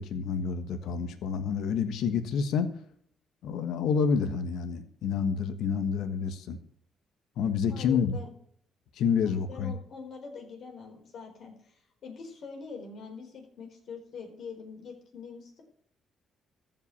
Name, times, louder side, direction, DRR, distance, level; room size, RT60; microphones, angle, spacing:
voice 1, 0.0-2.7 3.4-6.6 7.4-8.2 8.9-9.7, left 6 dB, 80° left, 9 dB, 1.4 m, -28 dB
voice 2, 7.7-8.3 9.1-15.6, left 5 dB, 65° left, 2 dB, 4.5 m, -44 dB
14.5 x 5.7 x 8.5 m, 0.63 s
cardioid pair, 90°, 0 cm